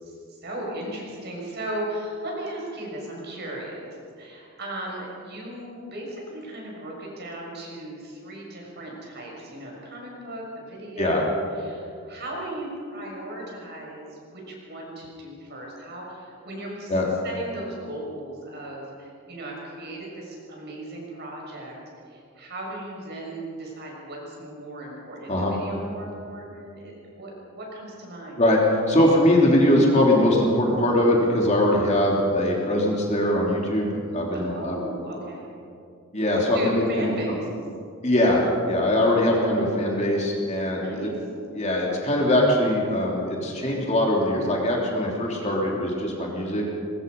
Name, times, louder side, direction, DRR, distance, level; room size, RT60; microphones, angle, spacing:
voice 1, 0.0-17.0 17.2-21.7 22.1-28.4 34.3-35.5 36.5-37.5 40.7-41.1, right 1 dB, 45° right, -2 dB, 6.5 m, -37 dB
voice 2, 28.4-34.8 36.1-37.4 38.0-41.1 41.5-46.6, left 1 dB, 30° left, -2 dB, 3.3 m, -22 dB
22.5 x 21.0 x 5.5 m, 2.4 s
head